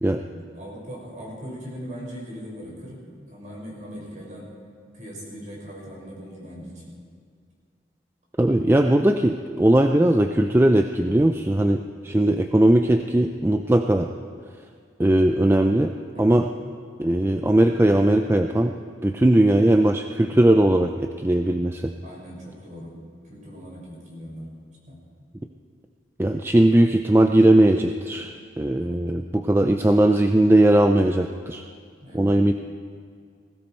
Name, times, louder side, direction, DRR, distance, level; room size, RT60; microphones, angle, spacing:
voice 1, 0.1-3.0 3.3-4.5 4.9-6.9 16.1-16.4 22.0-23.0 23.2-24.5 24.9-25.0 28.7-29.0 32.0-32.4, equal, 40° right, -3 dB, 5.4 m, -39 dB
voice 2, 8.4-14.1 15.0-15.9 16.2-16.5 17.0-18.7 19.0-21.9 26.2-28.3 28.6-31.6 32.1-32.5, right 1 dB, 15° right, 5 dB, 0.4 m, -19 dB
19.5 x 16.5 x 4.5 m, 2.2 s
head